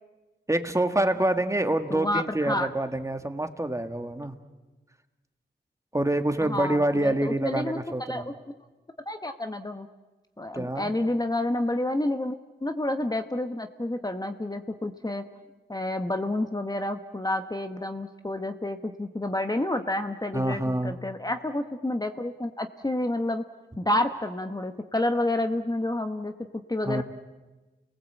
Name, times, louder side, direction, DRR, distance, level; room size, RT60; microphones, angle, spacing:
voice 1, 0.5-4.3 5.9-8.3 10.5-10.9 20.3-20.9 26.9-27.0, right 1 dB, 15° right, 7 dB, 1.8 m, -26 dB
voice 2, 1.9-2.7 6.4-8.3 9.1-9.9 10.4-12.4 12.6-15.2 15.7-23.4 23.8-26.3 26.7-27.0, left 1 dB, 20° left, 7 dB, 1.1 m, -29 dB
30.0 x 20.0 x 8.2 m, 1.2 s
wide cardioid pair, 70°, 19 cm